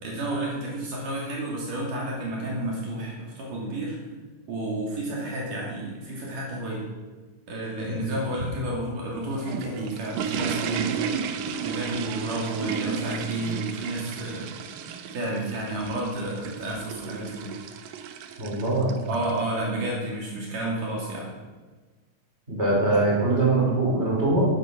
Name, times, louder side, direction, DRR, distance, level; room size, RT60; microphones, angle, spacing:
voice 1, 0.0-4.0 4.5-6.9 7.5-11.2 11.6-14.5 15.1-17.5 19.1-21.3 22.8-23.0, right 1 dB, 70° right, -3 dB, 4.1 m, -31 dB
sound 1, 9.1-19.4, right 7 dB, 85° right, 2.6 m, -34 dB
voice 2, 18.4-19.0 22.5-24.5, right 2 dB, 20° right, -4 dB, 4.6 m, -22 dB
12.5 x 9.9 x 6.3 m, 1.3 s
omnidirectional pair, 3.9 m